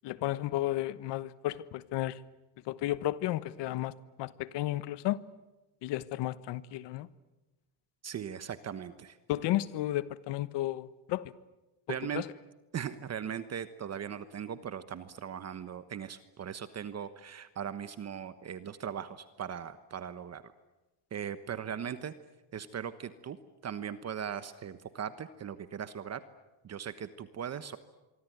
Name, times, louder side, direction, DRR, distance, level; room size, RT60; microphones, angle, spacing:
voice 1, 0.0-2.2 2.7-3.9 4.2-5.2 5.8-7.1 9.3-11.3 12.1-12.3, left 15 dB, 70° left, 1.3 m, -33 dB
voice 2, 8.0-9.2 11.9-12.2 12.7-20.4 21.1-22.1 22.5-23.4 23.6-26.2 26.6-27.8, right 8 dB, 35° right, 1.2 m, -39 dB
26.0 x 24.0 x 9.4 m
cardioid pair, 135°, 44 cm